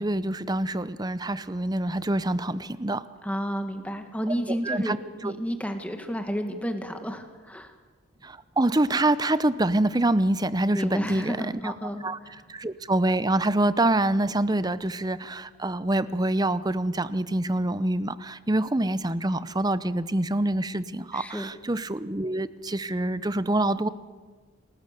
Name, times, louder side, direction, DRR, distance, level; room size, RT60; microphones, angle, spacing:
voice 1, 0.0-3.0 4.5-5.0 5.2-5.3 8.2-11.7 12.0-23.9, right 1 dB, 20° right, 15 dB, 0.7 m, -26 dB
voice 2, 3.2-5.0 5.2-7.7 10.7-12.0 21.1-21.5, equal, 5° left, 6 dB, 1.9 m, -31 dB
29.0 x 18.5 x 6.9 m, 1.4 s
head